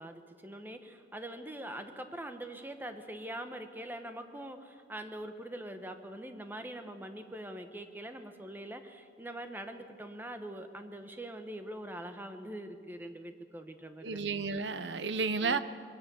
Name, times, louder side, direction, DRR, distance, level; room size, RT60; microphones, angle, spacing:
voice 1, 0.0-14.3 15.4-15.6, right 1 dB, 10° right, 7 dB, 1.2 m, -43 dB
voice 2, 14.0-15.6, right 4 dB, 80° right, 12 dB, 0.9 m, -32 dB
22.5 x 17.5 x 7.0 m, 2.2 s
head